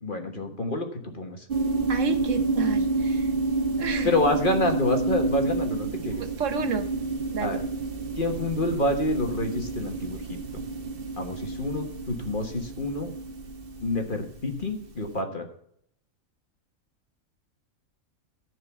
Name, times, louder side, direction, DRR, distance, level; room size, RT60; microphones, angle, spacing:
voice 1, 0.0-1.4 4.0-6.2 7.4-7.6 8.2-10.2 10.5-10.6 11.2-13.1 13.8-15.4, left 2 dB, 40° left, 4 dB, 1.5 m, -28 dB
sound 1, 1.5-14.9, right 3 dB, 45° right, 1.2 m, -29 dB
voice 2, 1.9-3.3 3.7-4.1 6.1-6.9 7.3-7.6, right 6 dB, 65° right, 8 dB, 1.3 m, -31 dB
13.5 x 4.7 x 7.1 m, 0.68 s
omnidirectional pair, 1.4 m